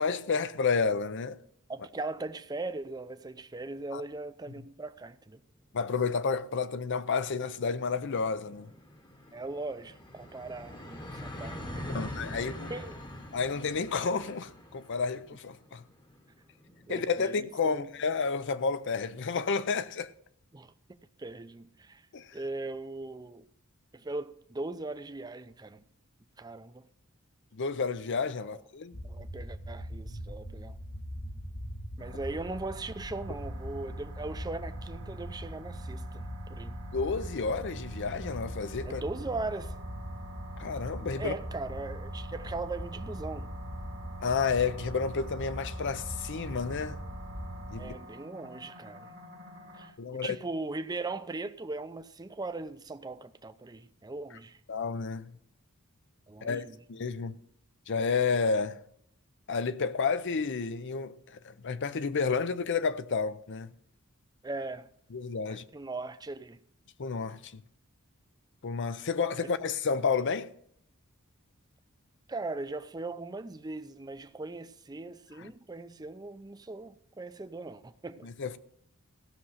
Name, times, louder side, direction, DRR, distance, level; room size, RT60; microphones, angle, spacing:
voice 1, 0.0-1.4 3.9-4.0 5.7-8.7 11.9-12.7 13.3-15.8 16.9-20.1 22.1-22.4 27.5-29.0 36.9-39.0 40.6-41.3 44.2-47.0 47.7-47.9 50.0-50.4 54.7-55.4 56.4-57.4 57.9-58.8 59.5-63.7 65.1-65.6 67.0-67.6 68.6-70.5 75.4-75.5 78.2-78.6, left 5 dB, 55° left, 0.6 m, -31 dB
voice 2, 1.7-5.4 9.3-12.9 16.9-17.9 20.5-20.7 21.2-22.0 22.3-23.4 23.9-25.8 26.4-26.9 29.0-30.8 32.0-36.8 38.8-39.8 41.2-43.5 47.8-49.1 49.7-54.6 56.3-56.8 64.4-64.9 65.5-66.6 69.4-69.5 72.3-78.3, right 2 dB, 20° right, 0.5 m, -39 dB
sound 1, 7.5-18.2, left 1 dB, 20° left, 1.1 m, -44 dB
sound 2, 28.9-47.9, equal, 75° left, 5.3 m, -41 dB
sound 3, 32.0-49.9, right 2 dB, 65° right, 1.7 m, -48 dB
16.0 x 6.4 x 5.7 m
head